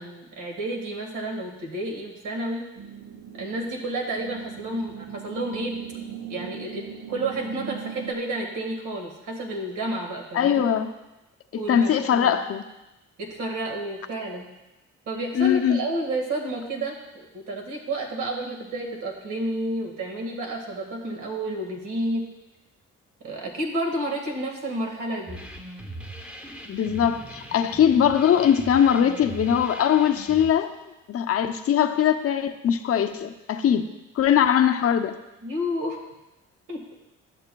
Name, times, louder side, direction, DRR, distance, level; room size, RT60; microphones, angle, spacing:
voice 1, 0.0-2.6 3.3-5.7 6.3-6.8 7.1-10.7 11.6-12.3 13.2-14.5 15.1-22.2 23.2-25.4 35.4-36.0 36.7-36.9, right 1 dB, 80° right, 1 dB, 1.8 m, -30 dB
sound 1, 2.8-8.1, right 7 dB, 65° right, 0.6 m, -40 dB
voice 2, 10.3-10.9 11.5-12.6 15.4-15.8 26.7-30.8 31.1-33.9 34.2-35.1, left 9 dB, 50° left, 7 dB, 0.6 m, -21 dB
sound 2, 25.3-30.5, right 1 dB, 5° right, 0.9 m, -40 dB
12.0 x 6.7 x 2.3 m, 1.0 s
cardioid pair, 90°, 30 cm